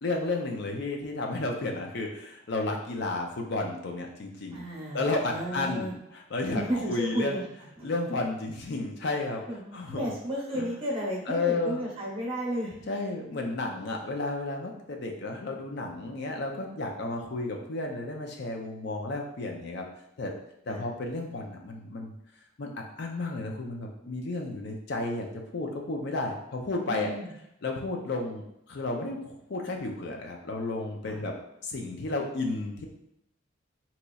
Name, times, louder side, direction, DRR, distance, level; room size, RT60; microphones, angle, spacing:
voice 1, 0.0-4.6 4.9-5.9 6.3-7.4 7.8-9.4 9.7-10.0 10.5-10.7 11.3-11.8 12.9-19.8 20.2-20.3 20.7-22.1 22.6-25.3 25.5-27.1 27.6-31.3 31.6-32.9, left 2 dB, 55° left, 2 dB, 0.5 m, -32 dB
voice 2, 4.5-5.9 6.4-7.4 7.8-7.9 9.5-12.9 20.7-20.8 26.9-27.3 31.0-31.2, equal, 30° right, -3 dB, 0.9 m, -33 dB
4.0 x 3.0 x 2.3 m, 0.81 s
head